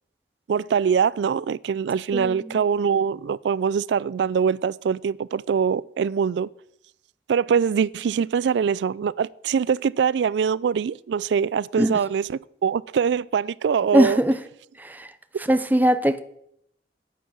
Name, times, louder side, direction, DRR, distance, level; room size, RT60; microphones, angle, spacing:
voice 1, 0.5-6.5 7.3-14.2 15.3-15.4, right 7 dB, 85° right, 0.3 m, -23 dB
voice 2, 2.1-2.6 11.8-11.9 13.9-14.4 14.8-15.1 15.5-16.2, right 1 dB, 10° right, 0.5 m, -20 dB
9.3 x 9.2 x 6.2 m
head